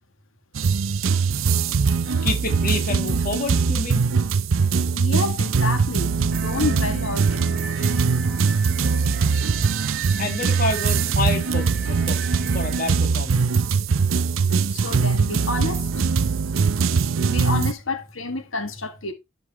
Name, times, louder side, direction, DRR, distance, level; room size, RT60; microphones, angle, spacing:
sound 1, 0.6-17.7, right 5 dB, 85° right, 0.6 m, -22 dB
voice 1, 2.0-4.0 10.2-13.6, left 3 dB, 40° left, 1.6 m, -29 dB
voice 2, 5.0-8.1 14.7-16.8 17.2-19.1, left 3 dB, 85° left, 1.9 m, -30 dB
sound 2, 6.3-13.0, right 4 dB, 45° right, 1.3 m, -36 dB
12.5 x 5.2 x 3.0 m
head